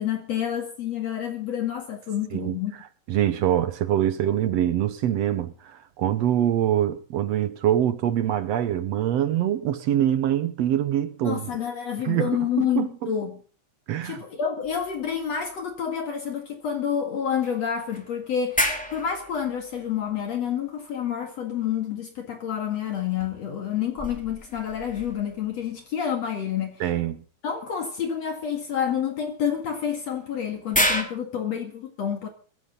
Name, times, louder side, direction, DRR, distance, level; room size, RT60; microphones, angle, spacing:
voice 1, 0.0-2.8 11.2-13.4 14.0-26.8 27.4-32.3, left 8 dB, 60° left, 3.0 m, -29 dB
voice 2, 3.1-11.4 12.0-12.3 12.6-12.9 13.9-14.2 26.8-27.2, right 11 dB, 65° right, 1.9 m, -24 dB
sound 1, 14.6-15.9 16.3-16.4 17.4-20.9 22.6-25.7 27.5-27.6 29.7-31.0, equal, 5° left, 2.5 m, -32 dB
21.5 x 16.0 x 3.9 m
omnidirectional pair, 3.5 m